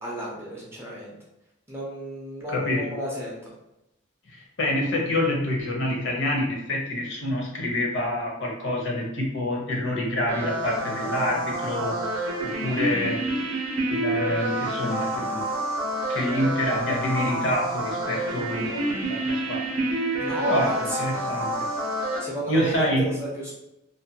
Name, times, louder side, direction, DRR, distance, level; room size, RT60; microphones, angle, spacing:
voice 1, 0.0-1.1 1.7-3.5 20.2-21.0 21.9-23.5, right 1 dB, 10° right, -5 dB, 0.4 m, -32 dB
voice 2, 2.5-2.9 4.3-12.0 12.4-13.6 13.9-15.5 16.1-19.7 20.4-21.7 22.5-23.1, left 1 dB, 60° left, -1 dB, 0.7 m, -27 dB
sound 1, 10.3-22.2, right 1 dB, 80° right, 0.5 m, -28 dB
2.4 x 2.2 x 2.6 m, 0.89 s
head